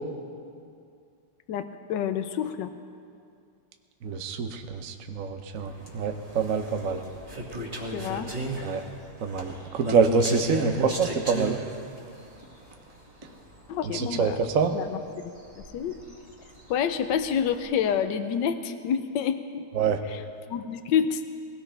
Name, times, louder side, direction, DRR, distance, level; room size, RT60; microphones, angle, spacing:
voice 1, 1.5-2.7 7.9-8.3 13.7-14.4 14.7-15.3 15.7-15.9 16.7-19.7 20.1-20.2 20.5-21.2, left 8 dB, 65° left, 9 dB, 1.2 m, -28 dB
voice 2, 4.0-7.0 8.6-8.8 9.2-11.6 13.9-14.8 19.7-20.0, right 5 dB, 65° right, 6 dB, 0.8 m, -26 dB
sound 1, 5.5-17.9, right 1 dB, 20° right, 1.8 m, -36 dB
21.0 x 17.0 x 3.4 m, 2.4 s
omnidirectional pair, 2.4 m